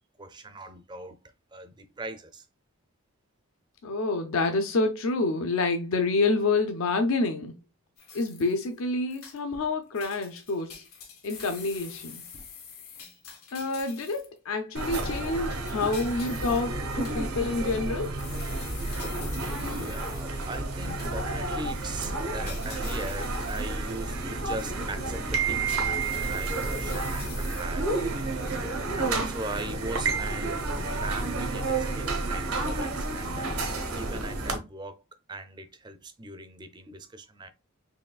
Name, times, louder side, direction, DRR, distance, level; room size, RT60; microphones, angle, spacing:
voice 1, 0.2-1.2 1.5-2.5 15.8-16.0 16.2-16.4 19.4-30.6 30.9-35.0 35.3-37.5, right 2 dB, 20° right, 0.4 m, -40 dB
voice 2, 3.8-7.5 8.1-10.8 11.2-12.2 13.5-18.1, left 3 dB, 70° left, 0.5 m, -28 dB
sound 1, 8.0-8.7 9.1-9.7 9.9-14.4 14.9-21.4 21.7-21.9 22.5-24.2 24.6-24.7 25.2-27.6, left 6 dB, 90° left, 1.5 m, -46 dB
sound 2, 14.7-34.6, right 3 dB, 85° right, 1.0 m, -30 dB
4.7 x 3.1 x 2.3 m
head